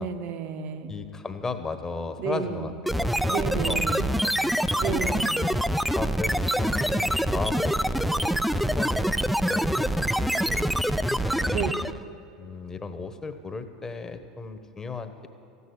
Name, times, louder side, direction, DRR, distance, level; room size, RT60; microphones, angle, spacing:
voice 1, 0.0-0.9 2.2-2.7 3.3-4.2 4.8-5.5 11.5-11.7, right 6 dB, 50° right, 9 dB, 1.1 m, -32 dB
voice 2, 0.9-5.2 5.9-9.1 9.4-11.6 12.4-15.3, left 4 dB, 20° left, 9 dB, 1.1 m, -36 dB
sound 1, 2.9-12.0, equal, ahead, 0.5 m, -25 dB
14.0 x 8.4 x 9.6 m, 2.6 s
figure-of-eight pair, 80°, 3 cm